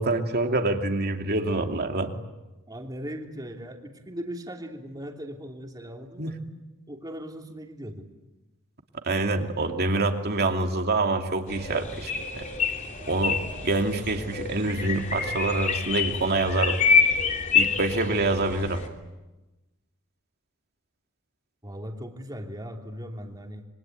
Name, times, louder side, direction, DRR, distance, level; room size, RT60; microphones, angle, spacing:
voice 1, 0.0-2.1 6.2-6.3 9.0-12.5 13.1-16.8 17.5-18.8, right 2 dB, 45° right, 4 dB, 2.6 m, -26 dB
voice 2, 2.7-6.3 6.9-8.1 21.6-23.6, equal, 20° right, 2 dB, 3.0 m, -38 dB
sound 1, 11.5-18.9, left 5 dB, 35° left, 3.1 m, -27 dB
26.5 x 24.0 x 9.3 m, 1.1 s
head